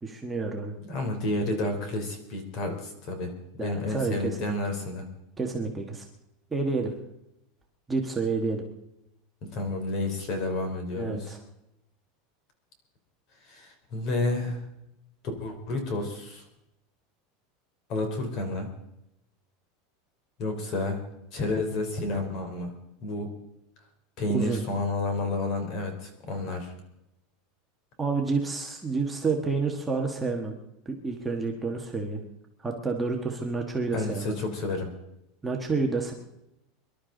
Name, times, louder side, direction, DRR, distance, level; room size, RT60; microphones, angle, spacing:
voice 1, 0.0-0.7 3.6-4.5 5.4-6.0 6.5-6.9 7.9-8.6 10.9-11.4 24.3-24.6 28.0-30.6 30.8-32.2 32.6-34.3 35.4-36.1, right 4 dB, 10° right, 1 dB, 1.4 m, -29 dB
voice 2, 0.9-3.3 3.6-5.1 9.4-11.4 13.5-14.6 15.4-16.4 17.9-18.7 20.4-21.0 21.3-22.7 23.0-23.3 24.2-26.7 33.9-34.9, left 2 dB, 40° left, 5 dB, 3.5 m, -30 dB
24.5 x 12.0 x 3.9 m, 0.83 s
supercardioid pair, 165°, 0 cm